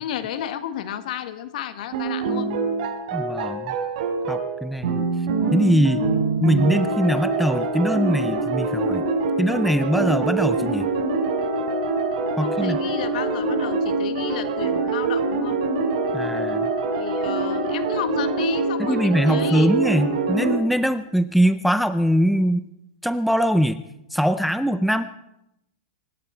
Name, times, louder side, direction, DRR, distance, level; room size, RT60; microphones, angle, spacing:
voice 1, 0.0-2.5 12.4-15.6 16.9-19.7, left 10 dB, 65° left, 10 dB, 1.6 m, -32 dB
sound 1, 1.9-20.6, right 3 dB, 60° right, 5.1 m, -24 dB
voice 2, 3.1-3.7 4.3-5.1 5.5-6.0 6.4-9.0 9.4-10.9 12.4-12.8 16.1-16.7 18.9-22.7 23.0-23.8 24.1-25.0, equal, ahead, 12 dB, 0.5 m, -22 dB
25.0 x 12.0 x 4.5 m, 0.84 s
supercardioid pair, 150°, 5 cm